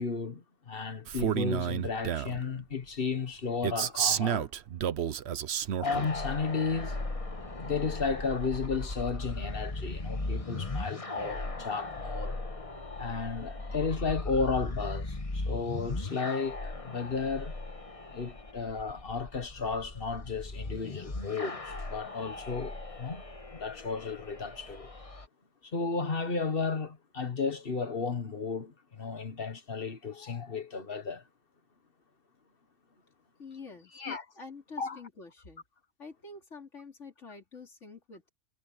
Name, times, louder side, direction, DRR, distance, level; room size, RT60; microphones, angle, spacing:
voice 1, 0.0-4.5 5.8-7.0 7.6-12.4 12.9-17.5 18.1-23.2 23.5-24.9 25.7-31.2 33.9-34.3 34.8-35.0, left 4 dB, 50° left, 1.7 m, -33 dB
Male speech man speaking, 1.1-2.4 3.6-6.1, right 9 dB, 65° right, 1.0 m, -30 dB
sound 1, 5.8-25.3, left 2 dB, 30° left, 1.5 m, -38 dB
voice 2, 33.4-33.9 34.4-35.6 36.0-38.3, left 4 dB, 70° left, 3.8 m, -47 dB
omnidirectional pair, 1.3 m